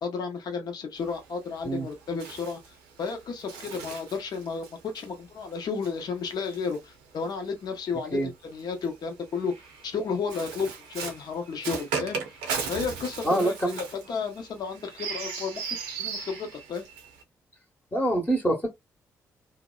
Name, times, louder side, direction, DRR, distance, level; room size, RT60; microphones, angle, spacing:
voice 1, 0.0-9.5 9.8-15.6 16.0-16.8, left 5 dB, 60° left, 0.8 m, -33 dB
Bird, 1.0-7.5 8.4-17.2, right 5 dB, 85° right, 0.6 m, -38 dB
voice 2, 13.2-13.8 17.9-18.7, right 1 dB, 20° left, 0.9 m, -25 dB
2.7 x 2.0 x 2.3 m
hypercardioid pair, 45°, 8 cm